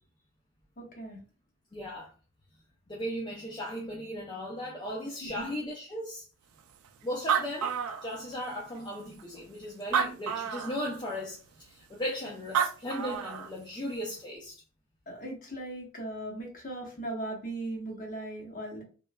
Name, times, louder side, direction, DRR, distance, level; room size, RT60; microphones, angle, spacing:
voice 1, 0.8-1.2 5.2-5.5 15.1-18.8, right 1 dB, 40° left, 0.9 m, -38 dB
voice 2, 1.7-2.1 2.9-6.2 7.0-7.7 8.0-14.5, equal, 20° left, 0.3 m, -37 dB
Animal, 6.8-6.9 7.1-8.5 9.2-9.3 9.8-10.8 12.3-12.4 12.5-13.5, right 7 dB, 80° right, 0.3 m, -29 dB
3.0 x 2.1 x 2.2 m
head